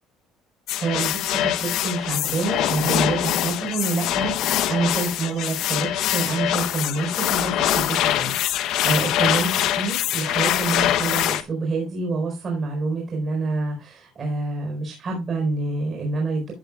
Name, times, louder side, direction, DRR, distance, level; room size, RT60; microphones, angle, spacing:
sound 1, 0.7-11.4, left 12 dB, 60° left, 0.9 m, -24 dB
voice 1, 0.8-16.5, right 3 dB, 30° right, -1 dB, 4.3 m, -27 dB
14.0 x 7.1 x 2.4 m, 0.27 s
cardioid pair, 155°, 0 cm